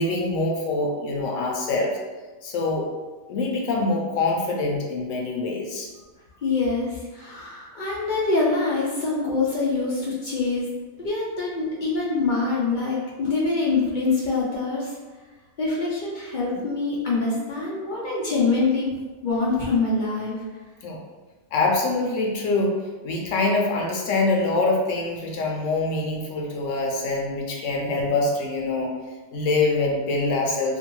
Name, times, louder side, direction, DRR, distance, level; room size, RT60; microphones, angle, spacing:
voice 1, 0.0-1.9 2.4-2.9 3.3-5.9 20.8-21.0 21.5-22.8 23.0-28.9 29.3-30.8, left 2 dB, 90° left, 0 dB, 0.9 m, -24 dB
voice 2, 6.4-10.6 11.0-14.8 15.6-18.9 19.2-20.3, left 3 dB, 60° left, -5 dB, 0.5 m, -24 dB
2.6 x 2.1 x 2.9 m, 1.3 s
omnidirectional pair, 1.2 m